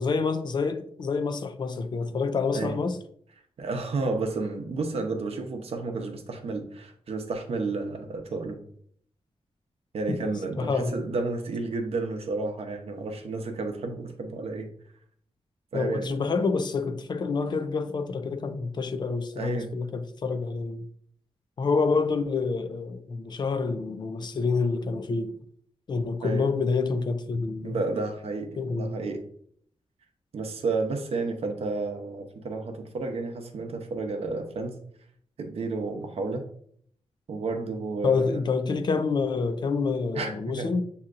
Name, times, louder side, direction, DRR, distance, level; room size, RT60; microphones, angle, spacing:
voice 1, 0.0-3.0 10.1-10.2 10.5-11.0 15.7-20.9 21.6-25.4 25.9-27.8 28.6-29.0 38.0-40.8, left 4 dB, 45° left, 0.4 m, -27 dB
voice 2, 3.6-8.6 9.9-14.7 15.7-16.1 19.4-19.7 26.2-26.5 27.6-29.2 30.3-34.8 35.4-36.5 37.3-38.4 40.1-40.7, right 3 dB, 65° right, 0.7 m, -31 dB
7.4 x 2.8 x 2.5 m
wide cardioid pair, 175°, 11 cm